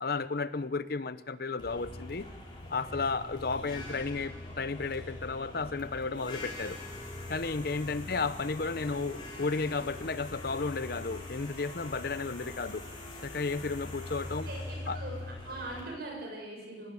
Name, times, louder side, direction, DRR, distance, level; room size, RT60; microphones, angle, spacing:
voice 1, 0.0-2.3 2.7-6.8 7.3-12.8 13.2-14.5 14.9-15.0, left 4 dB, 60° left, 14 dB, 0.8 m, -33 dB
sound 1, 1.6-15.8, left 2 dB, 25° left, 5.4 m, -43 dB
voice 2, 14.5-16.9, right 2 dB, 60° right, 0 dB, 7.3 m, -42 dB
19.5 x 16.0 x 8.5 m, 1.2 s
head